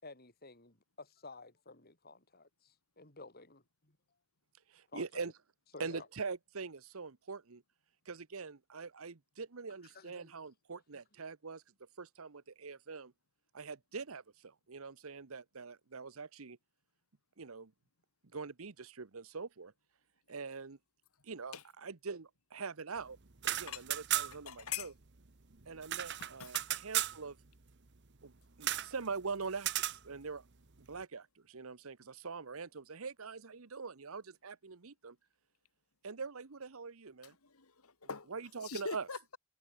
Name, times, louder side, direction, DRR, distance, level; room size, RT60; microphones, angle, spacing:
voice 1, 0.0-4.0 4.9-5.3 5.7-6.1 9.8-10.3, left 3 dB, 45° left, 5.7 m, -53 dB
voice 2, 4.7-5.3 5.8-7.6 8.1-11.6 12.0-13.1 13.5-16.6 17.4-17.7 18.3-19.7 20.3-20.8 21.2-23.2 23.4-24.9 25.7-27.4 28.2-28.3 28.6-30.4 30.9-35.2 36.0-37.3 38.3-39.1, right 4 dB, 75° right, 1.0 m, -43 dB
sound 1, 23.3-24.6 24.8-24.9 25.2-27.2 28.6-28.9 29.6-30.0, right 13 dB, 55° right, 1.2 m, -35 dB
voice 3, 24.3-24.9 26.2-26.7 37.4-38.3 38.6-39.4, left 6 dB, 90° left, 2.3 m, -43 dB
head